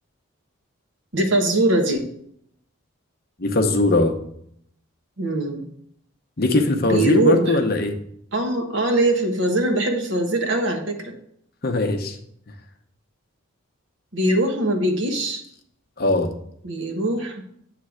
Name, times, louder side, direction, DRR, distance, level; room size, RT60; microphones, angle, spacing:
voice 1, 1.1-2.1 5.2-5.6 6.9-7.5 8.3-11.1 14.1-15.4 16.6-17.4, right 1 dB, 55° right, 4 dB, 1.1 m, -22 dB
voice 2, 3.4-4.2 6.4-7.9 11.6-12.2 16.0-16.3, left 2 dB, 45° left, 5 dB, 0.8 m, -20 dB
8.4 x 3.3 x 6.3 m, 0.68 s
head